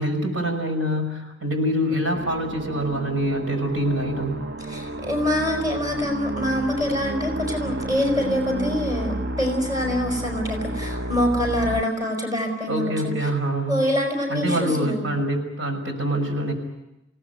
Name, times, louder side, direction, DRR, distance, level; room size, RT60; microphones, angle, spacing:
voice 1, 0.0-4.3 12.7-13.9 14.3-16.5, equal, 90° right, 4 dB, 6.0 m, -25 dB
sound 1, 2.1-11.8, right 2 dB, 55° right, 1.0 m, -31 dB
voice 2, 4.7-13.1 13.7-15.1, left 1 dB, 20° right, 3 dB, 5.3 m, -25 dB
28.5 x 18.0 x 9.3 m, 0.93 s
head